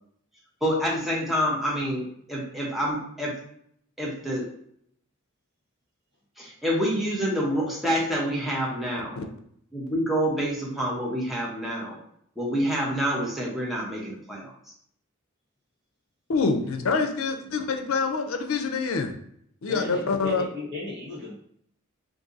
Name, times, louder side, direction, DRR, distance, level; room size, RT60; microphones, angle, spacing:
voice 1, 0.6-3.4 4.0-4.4 6.4-9.2 9.7-12.0 12.4-14.5, equal, ahead, -5 dB, 0.7 m, -27 dB
voice 2, 16.3-19.1 19.6-20.5, left 4 dB, 70° left, 5 dB, 0.5 m, -26 dB
voice 3, 19.7-21.3, left 3 dB, 55° right, -6 dB, 1.3 m, -35 dB
2.6 x 2.6 x 3.8 m, 0.68 s
head